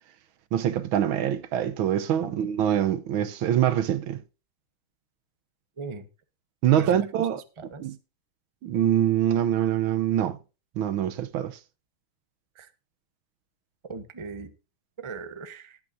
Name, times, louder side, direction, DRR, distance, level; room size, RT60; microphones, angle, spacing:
voice 1, 0.5-4.2 6.6-7.4 7.8-8.0 8.6-10.4 10.8-11.6, right 10 dB, 75° right, 1.6 m, -24 dB
voice 2, 5.8-6.1 6.8-7.3 7.6-7.9 12.5-12.7 13.9-14.5 15.0-15.8, right 4 dB, 20° right, 0.8 m, -38 dB
19.0 x 9.0 x 2.7 m
omnidirectional pair, 2.3 m